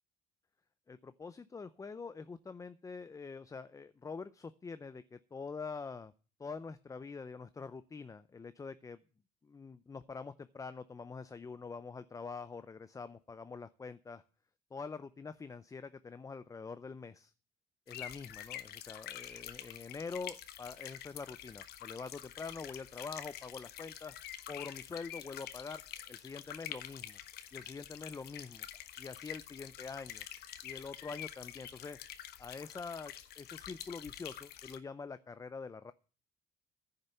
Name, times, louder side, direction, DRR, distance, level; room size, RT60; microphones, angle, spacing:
voice 1, 0.9-6.1 6.4-9.0 9.4-14.2 14.7-17.3 17.9-24.2 24.5-25.8 26.1-27.2 27.5-28.7 29.0-30.3 30.6-32.0 32.4-35.9, left 4 dB, 20° left, 13 dB, 0.5 m, -45 dB
sound 1, 17.9-34.8, left 11 dB, 70° left, 1.2 m, -47 dB
10.0 x 6.7 x 9.0 m, 0.37 s
cardioid pair, 110°, 17 cm